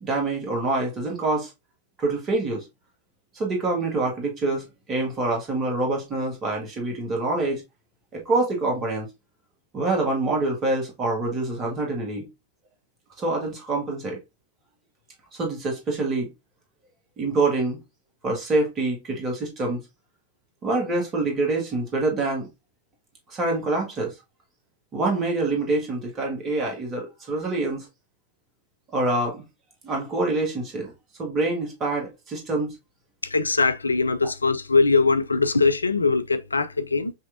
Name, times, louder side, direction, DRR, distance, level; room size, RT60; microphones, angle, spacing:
voice 1, 0.0-1.5 2.0-2.6 3.3-7.6 8.1-9.1 9.7-12.3 13.2-14.2 15.3-16.3 17.2-17.8 18.2-19.8 20.6-22.5 23.3-24.1 24.9-27.9 28.9-29.4 29.8-30.9 31.2-32.8, right 2 dB, 30° right, 1.7 m, -26 dB
voice 2, 33.2-37.1, left 4 dB, 80° left, 0.3 m, -21 dB
5.4 x 3.1 x 2.6 m
figure-of-eight pair, 90°, 0 cm